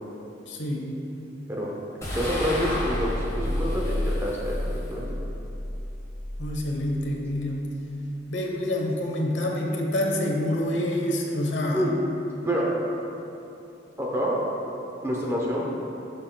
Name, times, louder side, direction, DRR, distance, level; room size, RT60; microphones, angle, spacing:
voice 1, 0.5-1.0 6.4-7.7 8.3-11.9, left 1 dB, 80° left, 0 dB, 1.0 m, -27 dB
sound 1, 2.0-7.4, left 1 dB, 15° left, 1.4 m, -30 dB
voice 2, 2.1-4.6 4.9-5.0 11.7-11.9 12.4-12.7 14.0-14.4 14.7-15.7, equal, 15° right, -4 dB, 0.8 m, -27 dB
11.5 x 5.8 x 2.3 m, 2.8 s
head